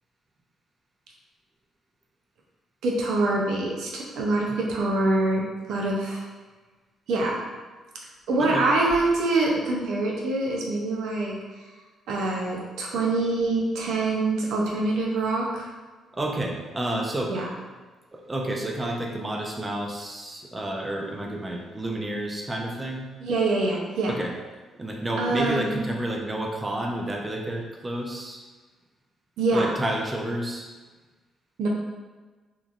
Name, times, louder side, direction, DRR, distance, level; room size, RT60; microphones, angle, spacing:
voice 1, 2.8-6.2 7.1-7.4 8.3-11.3 12.1-15.7 17.3-17.5 23.2-24.2 25.2-25.8 29.4-29.7 31.6-31.7, right 2 dB, 80° right, -2 dB, 0.6 m, -25 dB
voice 2, 16.1-17.3 18.1-23.1 24.1-24.3 24.8-28.4 29.5-30.7, right 1 dB, 20° right, 0 dB, 0.4 m, -30 dB
2.9 x 2.5 x 2.4 m, 1.3 s
cardioid pair, 90°, 0 cm